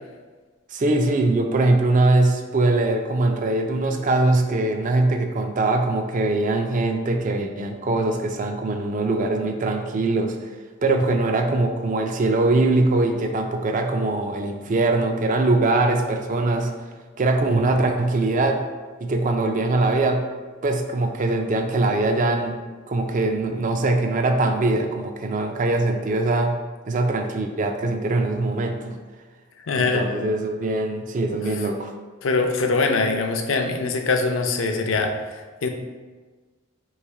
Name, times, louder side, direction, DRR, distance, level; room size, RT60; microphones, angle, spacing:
voice 1, 0.7-10.5 10.8-16.7 17.2-18.6 19.0-20.3 20.6-22.6 22.9-26.6 26.9-29.0 29.7-31.9, right 2 dB, 40° right, 5 dB, 0.4 m, -22 dB
voice 2, 29.6-30.1 32.2-35.7, left 3 dB, 65° left, 4 dB, 0.5 m, -23 dB
3.2 x 3.0 x 4.6 m, 1.4 s
head